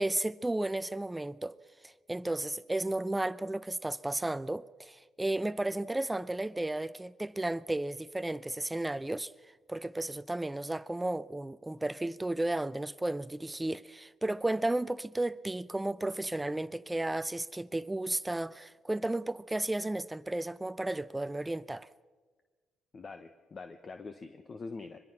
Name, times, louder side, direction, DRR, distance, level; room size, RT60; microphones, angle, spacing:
voice 1, 0.0-1.6 1.8-9.3 9.7-21.9, right 2 dB, 10° right, 0.6 m, -33 dB
voice 2, 22.9-25.0, left 4 dB, 40° left, 1.0 m, -44 dB
24.0 x 21.5 x 6.0 m
cardioid pair, 90°, 0 cm